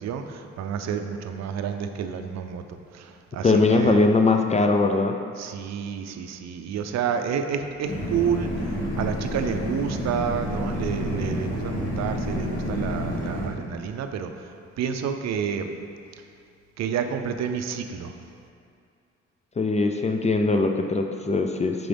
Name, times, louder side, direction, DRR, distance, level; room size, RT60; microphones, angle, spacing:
voice 1, 0.0-4.0 5.4-14.3 14.8-15.7 16.8-18.1, right 7 dB, 65° right, 7 dB, 0.5 m, -29 dB
voice 2, 3.4-5.1 19.6-21.9, left 3 dB, 25° left, 4 dB, 0.4 m, -21 dB
sound 1, 7.8-13.5, equal, 45° left, 1.4 m, -29 dB
5.9 x 5.2 x 3.4 m, 2.4 s
cardioid pair, 90°, 30 cm